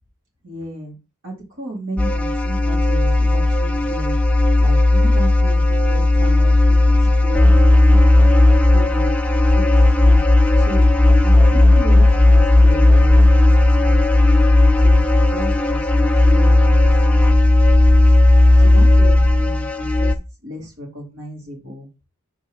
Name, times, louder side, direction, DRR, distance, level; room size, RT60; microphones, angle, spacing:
voice 1, 0.4-1.0 1.2-4.2 4.6-8.5 8.7-9.1 9.5-9.6 9.9-10.2 10.6-10.8 11.2-13.1 13.4-13.5 13.8-14.0 14.8-17.5 17.8-18.0 18.6-20.1 20.4-21.9, equal, 65° right, -1 dB, 2.6 m, -33 dB
sound 1, 2.0-20.1, left 2 dB, 5° left, 0.4 m, -13 dB
5.5 x 3.6 x 5.0 m, 0.29 s
head